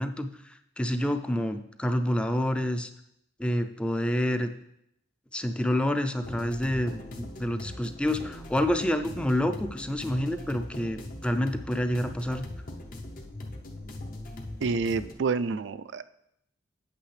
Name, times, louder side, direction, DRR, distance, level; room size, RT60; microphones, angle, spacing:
voice 1, 0.0-2.9 3.4-4.5 5.3-12.5, left 1 dB, 5° left, 7 dB, 0.4 m, -28 dB
sound 1, 6.2-15.1, left 1 dB, 50° left, 0.8 m, -40 dB
voice 2, 14.6-16.1, right 4 dB, 70° right, 14 dB, 0.4 m, -28 dB
8.6 x 8.3 x 3.3 m, 0.78 s
head